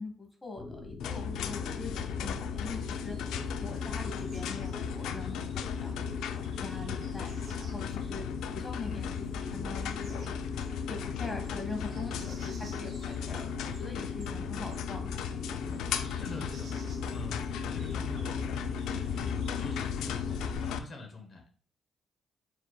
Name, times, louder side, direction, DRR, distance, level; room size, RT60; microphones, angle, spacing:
voice 1, 0.0-3.2 3.6-8.2 8.5-10.4 10.9-15.3, left 3 dB, 20° left, 3 dB, 1.2 m, -43 dB
sound 1, 0.6-20.6, left 3 dB, 70° left, 1.2 m, -43 dB
sound 2, 1.0-20.8, left 7 dB, 85° left, 0.3 m, -35 dB
sound 3, 2.7-20.8, right 3 dB, 70° right, 2.1 m, -59 dB
voice 2, 16.2-16.7 17.1-21.6, left 2 dB, 50° left, 3 dB, 0.9 m, -45 dB
4.6 x 4.0 x 2.2 m, 0.41 s
cardioid pair, 90°, 0 cm